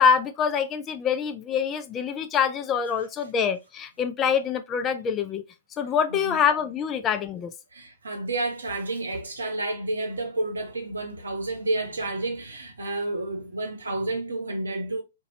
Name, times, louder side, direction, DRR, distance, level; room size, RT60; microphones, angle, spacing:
voice 1, 0.0-5.4 5.8-7.5, left 7 dB, 20° left, 0.3 m, -25 dB
voice 2, 7.7-15.0, right 2 dB, 75° right, 0.9 m, -30 dB
2.7 x 2.6 x 2.8 m
figure-of-eight pair, 115°, 0 cm